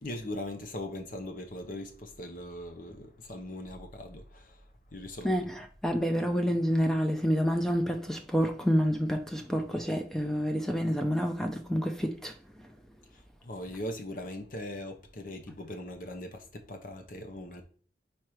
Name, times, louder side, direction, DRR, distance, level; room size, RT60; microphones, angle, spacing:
voice 1, 0.0-4.6 4.9-5.3 13.4-17.6, left 1 dB, 45° left, 0.9 m, -40 dB
voice 2, 5.2-12.3, equal, ahead, 0.5 m, -28 dB
4.5 x 4.5 x 4.9 m
head